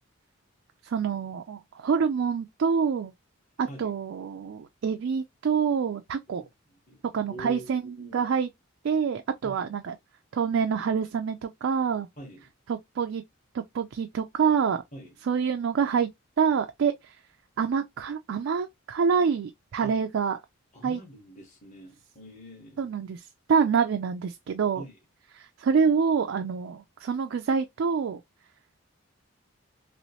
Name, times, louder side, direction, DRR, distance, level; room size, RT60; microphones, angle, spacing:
voice 1, 0.8-3.1 3.6-6.4 7.1-8.5 8.8-9.9 10.3-12.1 12.7-13.2 13.5-14.8 15.2-16.1 16.4-17.1 17.6-20.4 20.8-21.0 22.8-24.8 25.4-28.2, right 6 dB, 60° right, 0.3 m, -26 dB
voice 2, 7.3-8.2 9.4-9.6 12.2-12.4 14.9-15.1 19.8-20.0 20.7-22.8 24.7-24.9, equal, 35° left, 1.2 m, -44 dB
3.1 x 3.0 x 2.8 m
head